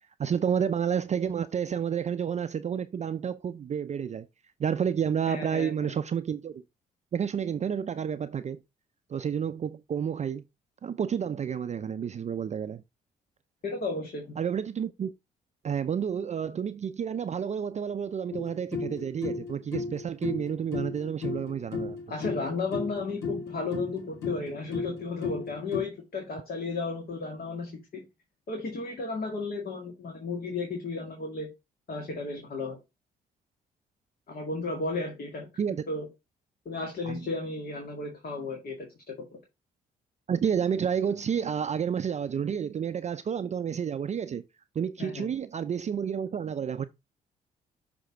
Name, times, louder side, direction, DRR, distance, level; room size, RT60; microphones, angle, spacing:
voice 1, 0.2-4.3 4.6-6.6 7.1-8.6 9.1-10.4 10.8-12.8 14.4-15.1 15.6-22.0 35.6-35.8 37.0-37.2 40.3-44.4 44.8-46.9, right 8 dB, 35° right, 0.5 m, -30 dB
voice 2, 5.3-5.7 13.6-14.3 22.1-28.0 28.5-31.5 31.9-32.8 34.3-35.5 35.9-36.1 36.7-39.4 45.0-45.3, left 3 dB, 50° left, 1.9 m, -34 dB
sound 1, 18.3-25.8, left 4 dB, 70° left, 1.9 m, -35 dB
6.3 x 3.4 x 4.8 m
hypercardioid pair, 45°, 20 cm